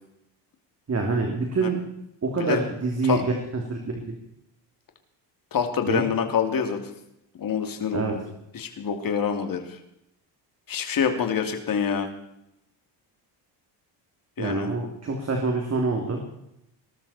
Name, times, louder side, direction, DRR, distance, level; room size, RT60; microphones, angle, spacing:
voice 1, 0.9-1.8 2.2-3.8 4.1-4.2 5.9-6.0 7.9-8.1 14.4-16.2, right 3 dB, 35° right, 2 dB, 3.1 m, -26 dB
voice 2, 5.5-6.8 7.4-8.2 8.5-9.8 10.7-12.1 14.4-14.7, left 7 dB, 45° left, 5 dB, 3.0 m, -26 dB
20.0 x 12.5 x 4.4 m, 0.82 s
cardioid pair, 105°, 45 cm